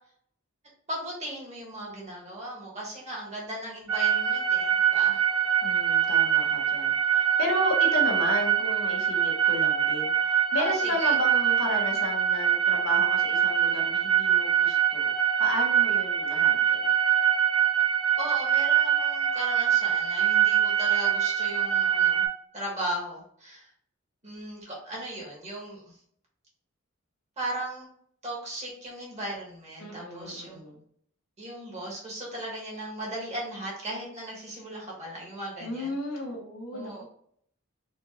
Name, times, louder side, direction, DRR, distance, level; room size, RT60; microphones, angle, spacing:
voice 1, 0.9-5.2 10.6-11.1 18.2-22.2 22.5-23.7 24.2-25.8 27.4-27.9 28.2-30.6 31.4-35.9 36.7-37.0, right 1 dB, 35° right, -3 dB, 1.6 m, -37 dB
sound 1, 3.9-22.3, right 9 dB, 85° right, 0.9 m, -24 dB
voice 2, 5.6-16.9 29.8-30.8 35.6-37.0, left 1 dB, 75° left, -1 dB, 1.1 m, -33 dB
4.3 x 2.5 x 3.0 m, 0.64 s
head